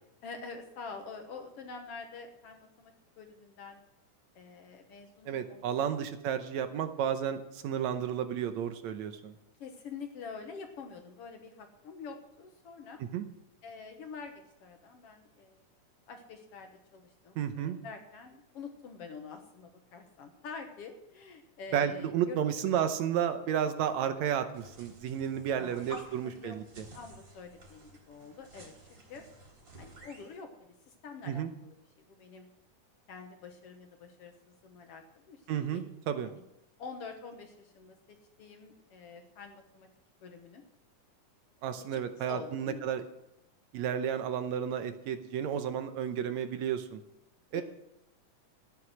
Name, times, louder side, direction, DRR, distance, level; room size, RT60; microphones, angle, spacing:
voice 1, 0.2-3.8 4.4-5.9 9.6-13.0 13.6-15.6 16.1-22.4 25.5-29.2 29.8-31.7 32.1-32.5 33.1-35.8 36.2-36.4 36.8-38.0 38.4-39.9 40.2-40.6 41.8-42.9 47.6-47.7, left 5 dB, 60° left, 5 dB, 1.8 m, -47 dB
voice 2, 5.3-9.3 13.1-13.3 17.4-17.8 21.7-26.8 31.3-31.5 35.5-36.3 41.6-43.0 43.7-47.0 47.5-47.6, right 9 dB, 75° right, 9 dB, 2.0 m, -32 dB
sound 1, 24.5-30.4, right 1 dB, 40° right, 4.1 m, -53 dB
14.0 x 9.7 x 6.2 m, 0.85 s
omnidirectional pair, 3.5 m